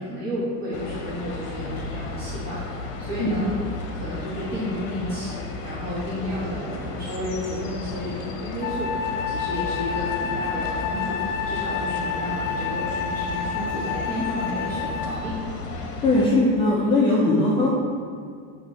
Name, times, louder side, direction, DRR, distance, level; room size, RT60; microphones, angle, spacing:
voice 1, 0.0-3.5 3.9-15.4, equal, 20° right, -9 dB, 1.2 m, -32 dB
sound 1, 0.7-16.3, left 3 dB, 55° left, 1.0 m, -34 dB
Wind instrument woodwind instrument, 8.6-15.4, left 6 dB, 70° left, 0.6 m, -29 dB
voice 2, 16.0-17.7, left 2 dB, 10° left, -7 dB, 0.5 m, -19 dB
7.9 x 3.1 x 4.2 m, 2.2 s
supercardioid pair, 145°, 44 cm